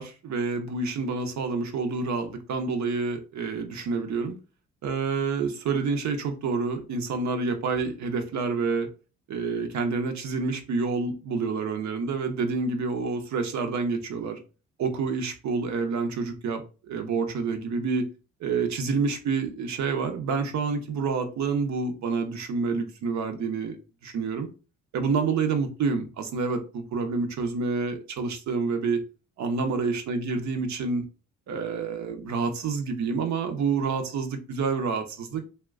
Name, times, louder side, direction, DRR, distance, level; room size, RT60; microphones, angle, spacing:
voice 1, 0.0-4.4 4.8-8.9 9.3-14.4 14.8-18.1 18.4-23.8 24.0-24.5 24.9-29.0 29.4-31.0 31.5-35.4, right 4 dB, 65° right, 0.8 m, -28 dB
2.9 x 2.2 x 3.5 m
cardioid pair, 90°, 30 cm